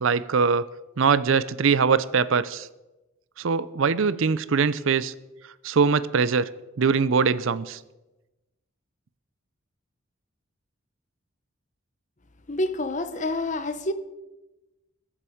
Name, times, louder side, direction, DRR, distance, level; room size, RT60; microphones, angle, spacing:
voice 1, 0.0-0.7 1.0-2.7 3.4-5.1 5.6-6.5 6.8-7.8, right 5 dB, 70° right, 0.5 m, -22 dB
voice 2, 12.5-13.9, left 2 dB, 35° left, 0.8 m, -28 dB
22.0 x 7.3 x 5.0 m
head